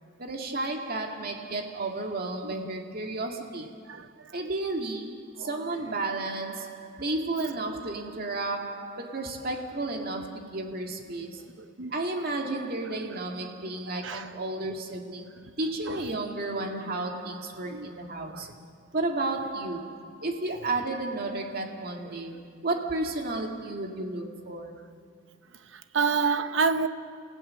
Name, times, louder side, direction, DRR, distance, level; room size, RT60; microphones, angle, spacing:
voice 1, 0.2-3.8 4.3-11.5 11.9-18.6 18.9-24.8, right 2 dB, 50° right, 2.1 m, -32 dB
voice 2, 3.9-4.3 11.8-11.9 14.0-14.3 15.9-16.0 17.7-17.9 18.3-18.4 25.7-26.9, right 5 dB, 65° right, 0.9 m, -27 dB
29.0 x 16.5 x 6.5 m
head